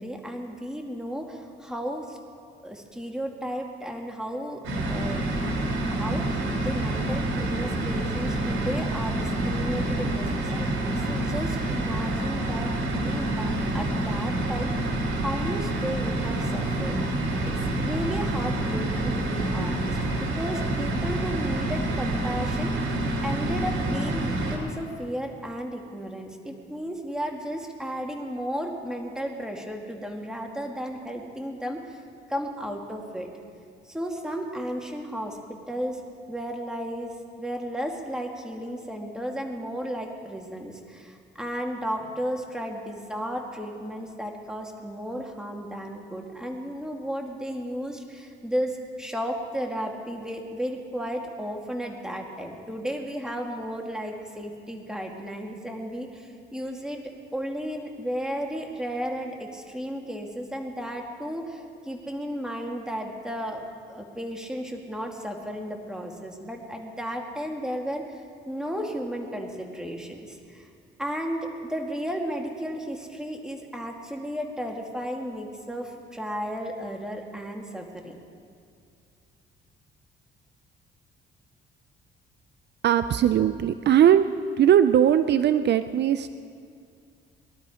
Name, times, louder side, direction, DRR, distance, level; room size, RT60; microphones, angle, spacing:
voice 1, 0.0-2.2 2.6-4.6 4.9-5.3 5.9-17.0 17.4-23.0 23.2-32.0 32.3-33.3 33.9-35.4 35.7-36.0 36.3-37.1 37.4-57.0 57.3-63.6 63.9-68.2 68.5-70.7 71.0-78.2, equal, 5° right, 1 dB, 2.3 m, -34 dB
sound 1, 4.6-24.6, right 1 dB, 75° right, 3.4 m, -27 dB
voice 2, 82.8-84.3 84.6-86.3, right 10 dB, 60° right, 11 dB, 0.5 m, -19 dB
21.5 x 12.0 x 5.0 m, 2.3 s
cardioid pair, 90°, 20 cm